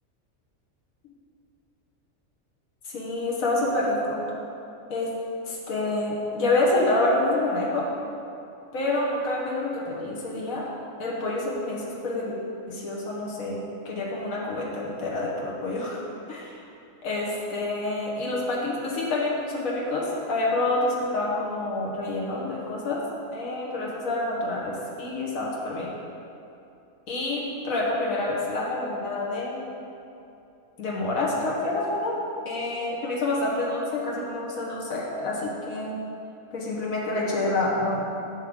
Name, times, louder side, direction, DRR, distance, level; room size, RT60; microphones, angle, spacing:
voice 1, 2.8-4.2 4.9-5.1 5.4-7.9 8.7-10.7 11.0-12.4 12.7-16.0 16.3-16.6 17.0-23.0 23.3-25.9 27.1-29.6 30.8-32.2 32.4-35.9 36.5-38.0, left 2 dB, 80° left, -4 dB, 1.6 m, -27 dB
11.5 x 6.5 x 3.7 m, 2.7 s
omnidirectional pair, 1.4 m